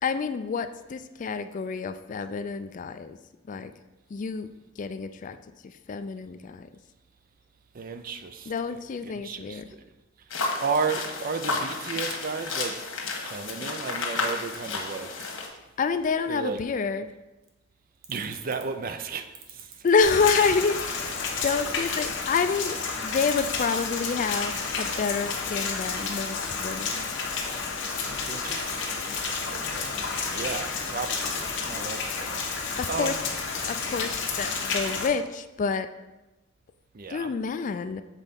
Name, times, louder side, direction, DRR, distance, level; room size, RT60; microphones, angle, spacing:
voice 1, 0.0-3.2 3.5-3.7 4.1-4.5 4.8-5.4 5.6-6.7 8.5-9.7 15.8-17.1 19.8-27.0 32.8-33.2 33.7-35.9 37.1-38.0, left 5 dB, 40° left, 0.3 m, -28 dB
voice 2, 7.7-8.5 9.0-9.8 10.6-15.3 16.3-16.6 18.1-19.9 28.3-32.4 32.9-33.2 36.9-37.3, right 5 dB, 45° right, 0.5 m, -34 dB
sound 1, 10.3-15.5, left 3 dB, 90° left, 1.3 m, -32 dB
sound 2, 17.4-17.6 17.9-18.9 19.2-20.5 20.9-22.5 22.7-24.2 24.5-24.7 25.0-25.2 25.5-26.9 27.2-28.2 28.5-29.2 29.5-29.6 29.8-29.9 30.5-30.6 30.9-31.5 32.0-32.3 32.9-34.0, right 6 dB, 70° right, 1.1 m, -50 dB
Rain, 20.0-35.1, left 4 dB, 65° left, 1.1 m, -31 dB
7.5 x 4.0 x 5.3 m
head